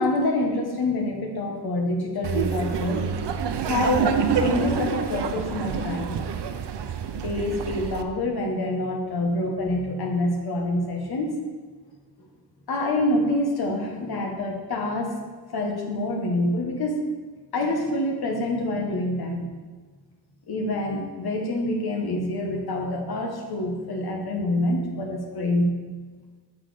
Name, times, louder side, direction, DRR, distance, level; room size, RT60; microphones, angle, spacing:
voice 1, 0.0-3.1 3.6-6.2 7.1-11.4 12.7-15.2 15.5-17.0 17.5-19.5 20.5-25.7, left 1 dB, 60° left, 1 dB, 1.3 m, -26 dB
Laughter, 2.2-8.0, right 7 dB, 70° right, 0.6 m, -27 dB
7.6 x 6.0 x 4.9 m, 1.4 s
wide cardioid pair, 155°, 42 cm